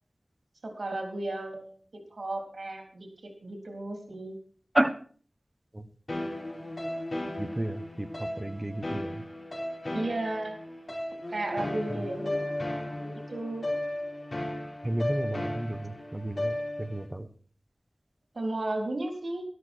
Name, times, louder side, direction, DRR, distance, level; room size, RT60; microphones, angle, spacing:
voice 1, 0.6-4.4 9.9-10.6 11.3-13.6 18.3-19.4, right 2 dB, 80° right, 3 dB, 3.7 m, -34 dB
sound 1, 6.1-17.1, left 1 dB, 50° left, 4.8 m, -35 dB
voice 2, 7.4-9.2 14.8-17.3, right 1 dB, 25° right, 10 dB, 1.2 m, -31 dB
13.0 x 12.5 x 4.5 m, 0.44 s
wide cardioid pair, 65°, 0 cm